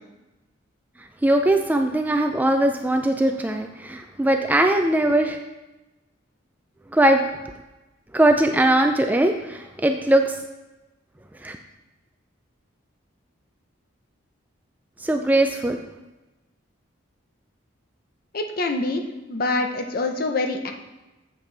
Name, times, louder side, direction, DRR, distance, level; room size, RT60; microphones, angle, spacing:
voice 1, 1.2-5.4 6.9-7.2 8.1-10.4 11.4-11.6 15.0-15.8, right 1 dB, 10° right, 5 dB, 0.3 m, -20 dB
voice 2, 18.3-19.0 19.3-20.7, left 2 dB, 45° left, 5 dB, 0.8 m, -25 dB
8.3 x 7.4 x 3.3 m, 1.1 s
head